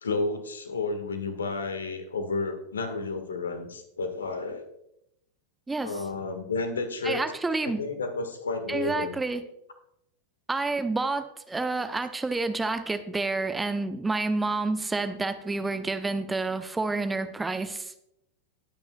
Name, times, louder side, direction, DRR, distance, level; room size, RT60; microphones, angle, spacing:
voice 1, 0.0-4.6 5.8-7.2 7.6-9.2, left 3 dB, 70° left, 8 dB, 1.5 m, -31 dB
voice 2, 5.7-6.0 7.0-7.8 8.7-9.4 10.5-17.9, right 3 dB, 10° right, 10 dB, 0.7 m, -29 dB
19.5 x 8.9 x 2.3 m, 0.79 s
figure-of-eight pair, 90°, 0 cm